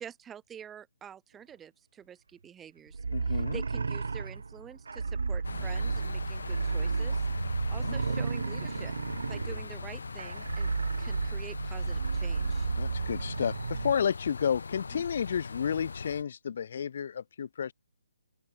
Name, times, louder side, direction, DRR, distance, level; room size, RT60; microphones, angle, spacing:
voice 1, 0.0-3.0 3.3-7.2 7.7-8.9 9.3-10.7 11.0-12.7 14.9-15.0, right 9 dB, 10° right, 2.3 m, -47 dB
sound 1, 2.9-13.9, right 4 dB, 80° right, 1.0 m, -32 dB
voice 2, 3.1-3.6 7.8-7.9 12.8-17.7, left 7 dB, 55° left, 1.7 m, -31 dB
sound 2, 5.4-16.2, left 4 dB, 80° left, 1.7 m, -40 dB
open air
hypercardioid pair, 155°, 0 cm